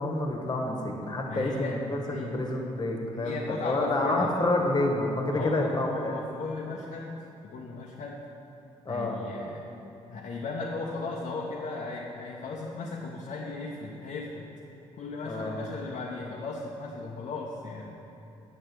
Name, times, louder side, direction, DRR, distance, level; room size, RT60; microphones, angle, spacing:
voice 1, 0.0-6.1 8.8-9.2 15.2-15.7, left 2 dB, 25° left, 1 dB, 1.4 m, -29 dB
voice 2, 1.2-1.8 2.0-2.3 3.1-4.3 5.3-7.2 7.4-8.2 8.9-9.6 10.1-14.5 15.0-17.9, left 3 dB, 50° left, -2 dB, 0.8 m, -36 dB
9.1 x 5.9 x 4.4 m, 2.9 s
figure-of-eight pair, 45°, 16 cm